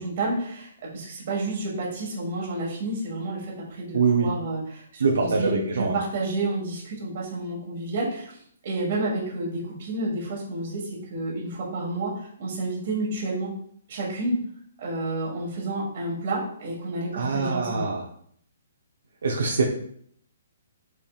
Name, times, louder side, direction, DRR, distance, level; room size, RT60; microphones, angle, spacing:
voice 1, 0.0-13.5 13.9-14.4 14.8-17.9, right 2 dB, 40° right, -3 dB, 1.4 m, -30 dB
voice 2, 3.9-4.3 5.0-6.0 17.1-18.0 19.2-19.6, right 4 dB, 80° right, -1 dB, 0.6 m, -23 dB
4.3 x 3.4 x 2.3 m, 0.64 s
hypercardioid pair, 175°, 0 cm